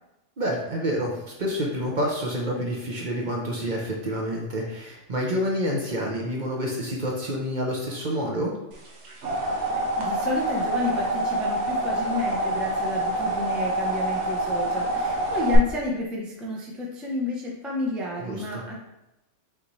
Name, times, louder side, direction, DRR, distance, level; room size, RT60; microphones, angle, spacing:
voice 1, 0.4-1.1 1.4-8.5 18.2-18.6, equal, 45° right, -2 dB, 0.7 m, -28 dB
sound 1, 8.9-15.6, right 1 dB, 65° right, 1.1 m, -26 dB
voice 2, 9.7-18.8, left 2 dB, ahead, -3 dB, 0.5 m, -31 dB
5.7 x 2.7 x 3.1 m, 0.91 s
omnidirectional pair, 1.3 m